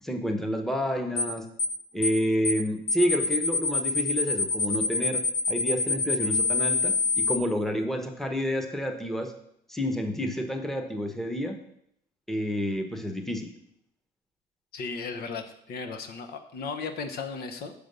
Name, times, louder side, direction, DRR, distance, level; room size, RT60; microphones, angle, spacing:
voice 1, 0.0-1.5 1.9-9.3 9.7-11.6 12.3-13.5, equal, ahead, 5 dB, 1.0 m, -29 dB
sound 1, 1.2-1.3 1.6-1.8 2.0-2.2 2.5-2.6 2.9-7.4, left 4 dB, 50° left, 1.2 m, -25 dB
voice 2, 14.7-17.7, left 4 dB, 65° left, 6 dB, 1.0 m, -35 dB
6.4 x 5.2 x 6.7 m, 0.72 s
cardioid pair, 110°, 17 cm